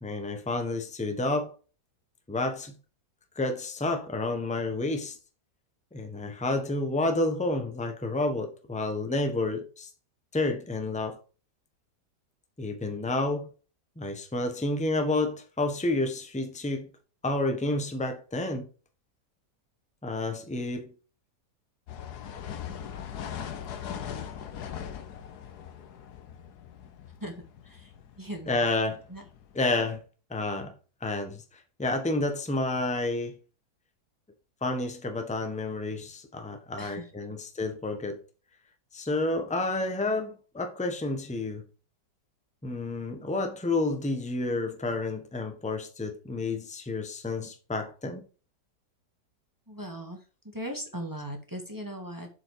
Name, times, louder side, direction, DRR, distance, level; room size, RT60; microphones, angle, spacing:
voice 1, 0.0-1.5 2.3-2.7 3.3-5.2 5.9-9.9 10.3-11.2 12.6-13.5 14.0-16.9 17.2-18.7 20.0-20.9 28.4-29.0 29.5-30.0 30.3-30.7 31.0-33.4 34.6-38.2 38.9-41.6 42.6-48.3, left 2 dB, 5° left, 1.1 m, -30 dB
sound 1, 21.9-29.9, left 8 dB, 70° left, 1.4 m, -40 dB
voice 2, 28.2-28.7 29.1-29.2 36.8-37.1 49.7-50.2 50.4-52.3, equal, 10° right, 1.6 m, -38 dB
7.4 x 5.3 x 4.8 m
omnidirectional pair, 1.8 m